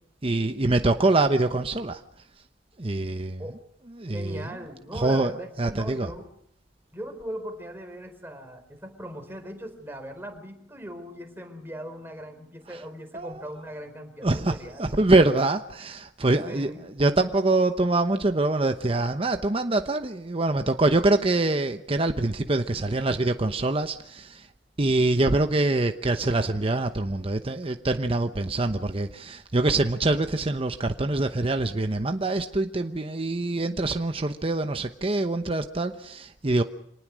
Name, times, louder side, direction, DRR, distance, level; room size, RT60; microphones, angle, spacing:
voice 1, 0.2-2.0 2.8-3.4 4.0-4.4 4.9-5.3 5.6-6.1 13.1-13.3 14.2-14.5 14.8-16.7 17.0-24.4 24.8-36.6, right 2 dB, 30° right, 0.9 m, -24 dB
voice 2, 4.1-6.3 6.9-14.9 16.4-16.9, equal, 15° right, 4.2 m, -39 dB
26.0 x 19.5 x 6.3 m
head